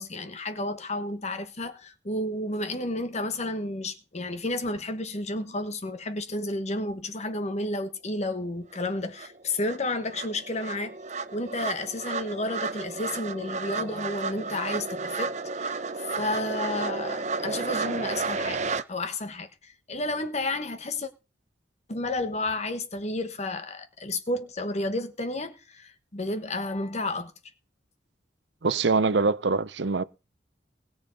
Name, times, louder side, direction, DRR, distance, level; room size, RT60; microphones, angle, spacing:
voice 1, 0.0-11.0 11.3-15.8 16.2-18.6 18.9-21.1 21.9-27.3, left 2 dB, 40° left, 1.3 m, -31 dB
sound 1, 8.7-8.8 9.2-18.8, right 4 dB, 40° right, 0.7 m, -32 dB
voice 2, 28.6-30.0, right 4 dB, 75° right, 0.7 m, -24 dB
20.5 x 7.2 x 4.0 m
head